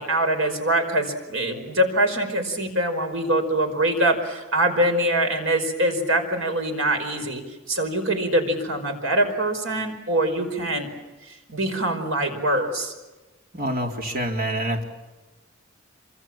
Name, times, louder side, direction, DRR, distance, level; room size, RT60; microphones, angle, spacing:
voice 1, 0.0-7.4 7.7-10.9 11.2-12.9, right 1 dB, 75° right, 6 dB, 5.2 m, -24 dB
voice 2, 13.5-14.8, right 1 dB, 45° right, 1 dB, 4.1 m, -26 dB
26.5 x 26.0 x 7.6 m, 1.2 s
head